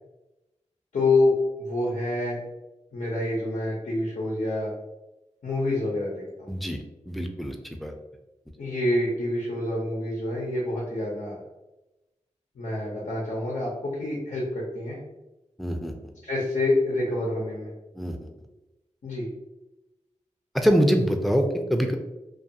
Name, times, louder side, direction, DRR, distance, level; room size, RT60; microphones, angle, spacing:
voice 1, 0.9-2.4 2.9-4.7 5.4-6.5 8.6-11.4 12.6-15.0 16.2-17.7 19.0-19.3, left 2 dB, 90° left, -4 dB, 0.7 m, -27 dB
voice 2, 6.5-6.8 7.1-7.9 15.6-15.9 18.0-18.3 20.5-22.0, equal, ahead, 4 dB, 0.4 m, -24 dB
2.5 x 2.3 x 2.7 m, 1.0 s
cardioid pair, 50°, 13 cm